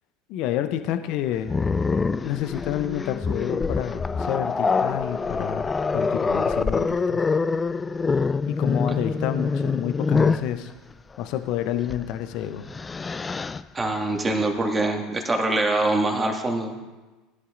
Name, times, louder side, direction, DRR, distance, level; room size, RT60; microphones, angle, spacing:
voice 1, 0.3-1.6 2.2-7.2 8.5-10.7 11.2-12.7, left 11 dB, 55° left, 10 dB, 0.7 m, -29 dB
Growling, 1.5-10.5 11.8-12.0 12.5-13.6, left 4 dB, 20° left, 0.3 m, -25 dB
voice 2, 13.7-16.8, right 2 dB, 20° right, 2 dB, 1.9 m, -24 dB
17.5 x 11.0 x 2.6 m, 1.2 s
hypercardioid pair, 75°, 0 cm